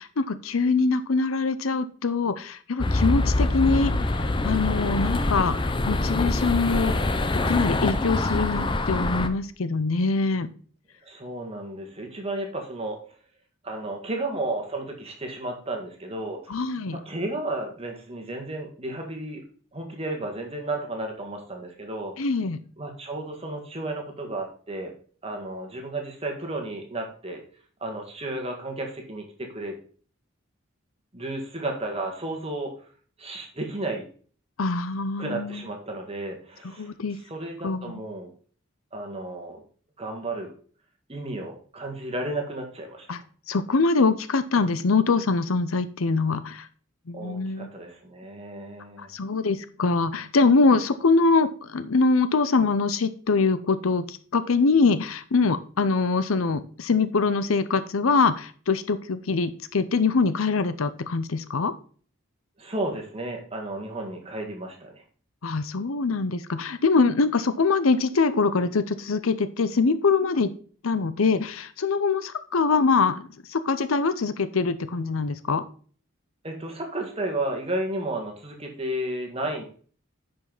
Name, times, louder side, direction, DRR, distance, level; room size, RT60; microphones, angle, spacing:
voice 1, 0.0-5.5 5.9-6.9 7.4-10.5 16.5-17.0 22.2-22.6 34.6-35.6 36.8-37.2 37.6-37.9 43.1-43.2 43.5-46.7 47.1-47.7 49.0-61.7 65.4-70.5 70.8-75.6, left 4 dB, 80° left, 12 dB, 0.7 m, -23 dB
sound 1, 2.8-9.3, left 2 dB, 25° left, 0.5 m, -24 dB
voice 2, 11.0-13.0 13.6-16.6 16.9-19.4 19.7-22.1 22.8-24.9 25.2-27.4 27.8-29.8 31.1-32.7 33.2-34.0 35.2-36.9 37.3-38.3 38.9-39.6 40.0-40.5 41.1-43.2 47.1-49.1 62.6-65.0 76.4-79.6, right 2 dB, 30° right, 2 dB, 1.7 m, -33 dB
9.8 x 5.3 x 4.0 m, 0.43 s
head